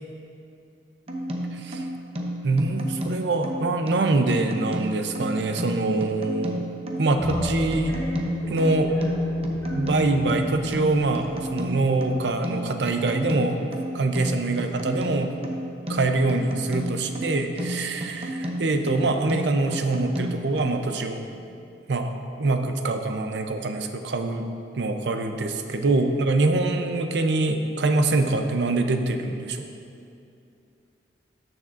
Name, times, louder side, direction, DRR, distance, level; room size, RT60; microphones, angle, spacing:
sound 1, 1.1-20.6, right 1 dB, 35° right, 0.7 m, -33 dB
voice 1, 1.5-1.8 2.4-6.6 7.0-8.0 8.5-8.9 9.7-13.6 13.9-15.3 15.9-21.2 21.9-22.1 22.4-24.5 24.8-29.6, right 2 dB, 70° right, 6 dB, 0.6 m, -24 dB
sound 2, 7.2-11.9, left 1 dB, 15° left, 1.1 m, -30 dB
13.0 x 6.3 x 2.5 m, 2.6 s
head